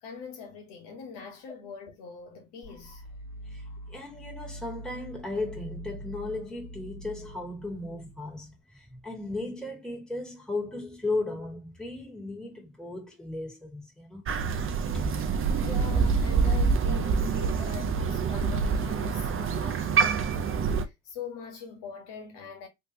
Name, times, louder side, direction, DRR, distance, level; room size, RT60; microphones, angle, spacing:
voice 1, 0.0-3.0 15.6-22.7, left 5 dB, 65° left, 1.4 m, -42 dB
sound 1, 2.6-8.6, equal, 40° left, 1.8 m, -44 dB
voice 2, 3.5-14.3 14.9-15.1, left 2 dB, ahead, 1.8 m, -36 dB
Crow, 14.3-20.8, right 5 dB, 30° right, 0.5 m, -26 dB
3.3 x 3.0 x 2.7 m
supercardioid pair, 85°, 43 cm